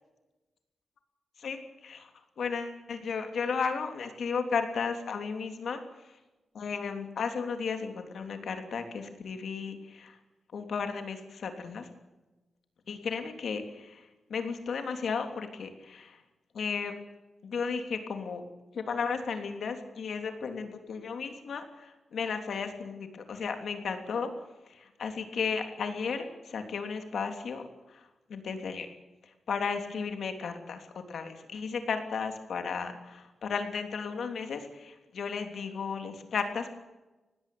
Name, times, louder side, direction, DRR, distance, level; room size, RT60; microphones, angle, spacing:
voice 1, 1.4-2.1 2.4-6.2 6.5-10.2 10.5-11.9 12.9-16.2 16.5-16.9 17.4-18.4 18.7-24.3 24.7-28.9 29.2-36.8, left 5 dB, 65° left, 6 dB, 3.1 m, -34 dB
19.5 x 16.5 x 9.4 m, 1.1 s
wide cardioid pair, 155°, 0 cm